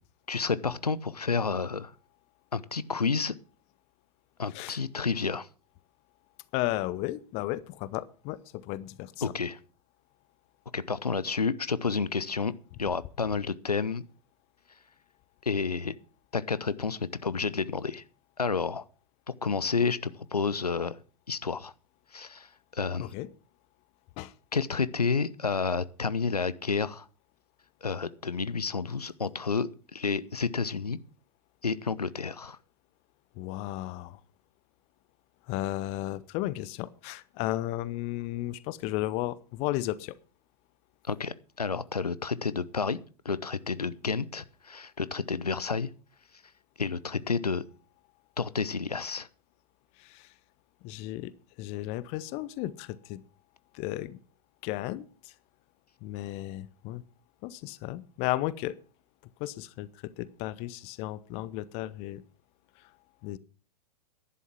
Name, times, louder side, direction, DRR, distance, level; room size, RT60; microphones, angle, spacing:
voice 1, 0.3-1.9 2.5-3.3 4.4-5.5 9.2-9.6 10.7-12.5 12.8-14.0 15.4-15.9 16.3-18.0 18.4-18.8 19.4-21.0 21.3-21.7 22.1-23.1 24.5-27.1 27.8-31.0 31.6-32.6 41.0-43.0 43.2-45.9 46.8-47.6 48.4-49.3, left 5 dB, 80° left, 17 dB, 0.8 m, -30 dB
voice 2, 6.5-9.1 23.0-23.3 24.2-24.3 33.4-34.2 35.5-40.1 50.0-50.3 50.8-53.2 53.7-54.2 54.6-55.3 56.0-57.0 57.4-58.8 59.4-62.2 63.2-63.4, left 15 dB, 35° left, 19 dB, 0.8 m, -34 dB
11.0 x 11.0 x 5.9 m, 0.39 s
figure-of-eight pair, 100°, 20 cm